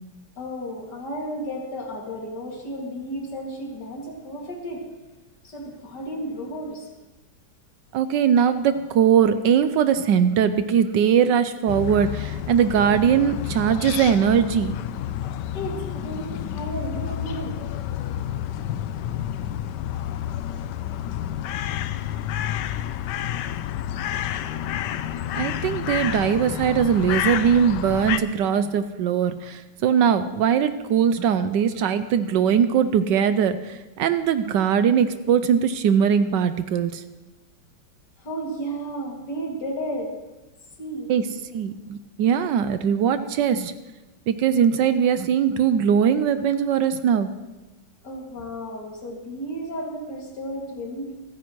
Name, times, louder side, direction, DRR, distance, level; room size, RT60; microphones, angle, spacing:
voice 1, 0.4-4.9 5.4-6.9 15.5-17.6 38.2-40.1 40.8-41.1 48.0-51.1, right 1 dB, 55° left, -1 dB, 2.9 m, -33 dB
voice 2, 7.9-14.7 25.3-37.0 41.1-43.7 44.3-47.3, right 8 dB, 75° right, 11 dB, 1.1 m, -21 dB
sound 1, 11.7-28.2, left 11 dB, 75° left, 1.0 m, -29 dB
26.5 x 9.4 x 3.1 m, 1.1 s
omnidirectional pair, 2.2 m